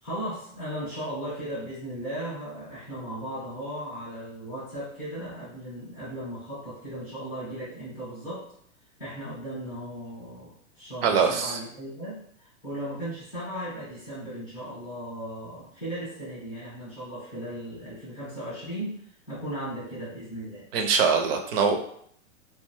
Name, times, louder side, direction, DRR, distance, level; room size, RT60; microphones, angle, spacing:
voice 1, 0.0-8.5 9.0-19.0 19.3-20.7, right 1 dB, 5° left, -15 dB, 0.4 m, -36 dB
voice 2, 11.0-11.6 20.7-21.8, right 6 dB, 50° right, 3 dB, 0.5 m, -23 dB
2.5 x 2.2 x 2.9 m, 0.65 s
supercardioid pair, 170°, 38 cm